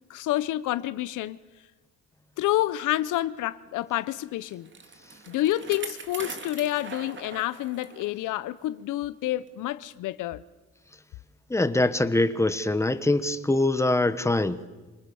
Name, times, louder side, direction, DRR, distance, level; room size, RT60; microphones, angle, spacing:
voice 1, 0.1-1.4 2.4-4.7 5.3-10.4, left 15 dB, 85° left, 0.7 m, -28 dB
Bicycle, 4.2-8.1 8.6-8.7 9.5-9.6, right 4 dB, 40° right, 2.3 m, -42 dB
voice 2, 11.5-14.6, left 2 dB, 10° left, 1.1 m, -23 dB
26.0 x 20.0 x 7.0 m
cardioid pair, 90°, 30 cm